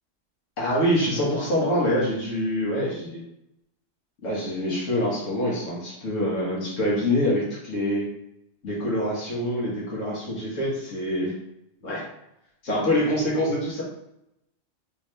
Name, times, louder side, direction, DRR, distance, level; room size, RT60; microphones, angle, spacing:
voice 1, 0.6-3.2 4.2-8.1 8.6-11.3 11.8-12.1 12.6-13.8, equal, 85° left, -5 dB, 1.6 m, -25 dB
3.5 x 3.0 x 3.2 m, 0.82 s
omnidirectional pair, 1.3 m